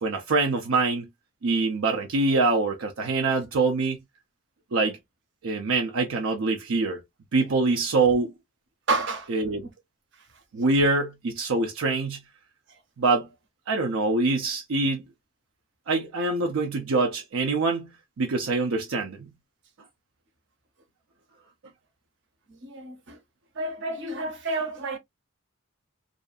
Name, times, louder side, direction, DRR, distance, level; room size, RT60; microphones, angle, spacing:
voice 1, 0.0-1.1 1.4-4.0 4.7-5.0 5.4-7.0 7.3-8.3 9.3-9.7 10.5-12.2 13.0-13.3 13.7-15.0 15.9-17.9 18.2-19.3, right 3 dB, 85° right, 0.5 m, -24 dB
voice 2, 8.9-9.3 22.6-23.2 23.6-25.0, right 3 dB, 60° right, 0.8 m, -29 dB
2.6 x 2.5 x 2.3 m
head